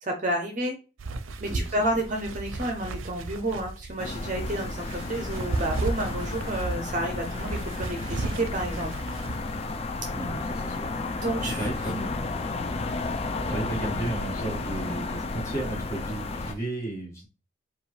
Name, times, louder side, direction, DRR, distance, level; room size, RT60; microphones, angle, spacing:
voice 1, 0.0-0.8 1.4-8.9 11.1-11.7, right 1 dB, 40° right, 3 dB, 0.7 m, -30 dB
sound 1, 1.0-9.4, right 3 dB, 80° right, 0.5 m, -34 dB
sound 2, 4.0-16.5, left 3 dB, 30° left, 0.4 m, -32 dB
voice 2, 10.1-10.9 11.6-12.3 13.5-17.3, right 2 dB, 15° left, -4 dB, 1.8 m, -34 dB
4.8 x 2.4 x 3.3 m, 0.33 s
head